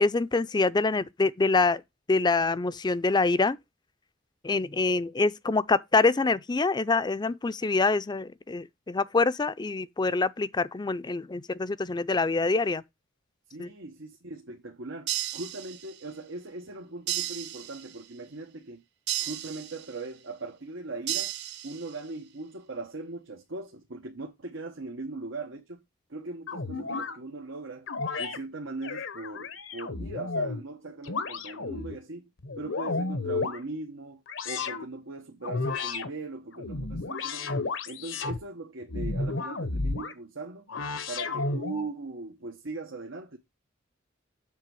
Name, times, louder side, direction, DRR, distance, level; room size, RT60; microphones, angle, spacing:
voice 1, 0.0-1.8 2.1-3.6 4.4-12.8 13.6-13.7, left 3 dB, 20° left, 0.4 m, -25 dB
voice 2, 13.5-18.8 19.2-21.3 21.6-25.8 26.1-27.9 28.2-32.3 32.6-40.6 41.1-43.4, right 3 dB, 90° right, 1.2 m, -40 dB
sound 1, 15.1-16.1 17.1-18.1 19.1-20.1 21.1-22.1, right 13 dB, 60° right, 0.7 m, -34 dB
sound 2, 26.5-27.2 27.9-28.4 28.8-30.6 31.1-32.0 32.4-33.6 34.3-34.9 35.4-36.1 36.5-38.4 38.9-40.1 40.7-41.9, left 3 dB, 80° left, 1.0 m, -32 dB
7.6 x 3.5 x 6.2 m
head